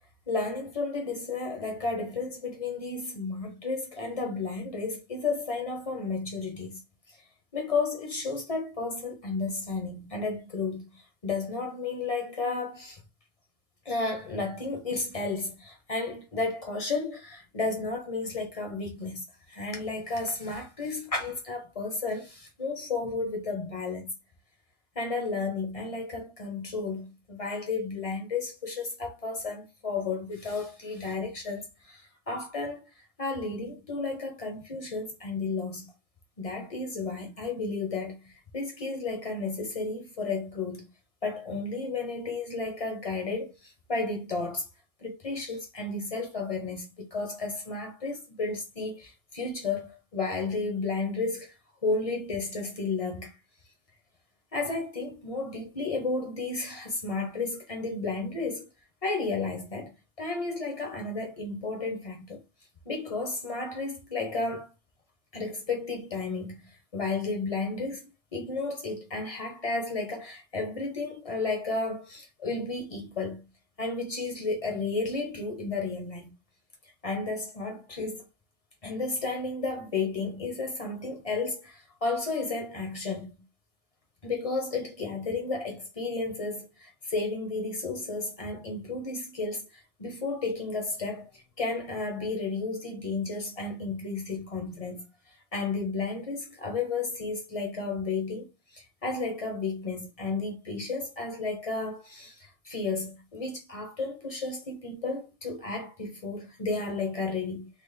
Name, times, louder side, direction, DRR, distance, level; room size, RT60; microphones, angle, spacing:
voice 1, 0.3-6.8 7.5-13.0 13.9-24.1 25.0-32.9 33.2-35.9 36.4-40.8 41.2-44.7 45.0-51.5 51.8-53.4 54.5-58.7 59.0-59.9 60.2-62.4 62.9-64.7 65.3-68.0 68.3-73.4 73.8-76.3 77.0-78.3 78.8-83.4 84.2-95.1 95.5-107.7, left 3 dB, 40° left, 0.5 m, -33 dB
3.3 x 2.0 x 3.2 m
omnidirectional pair, 1.5 m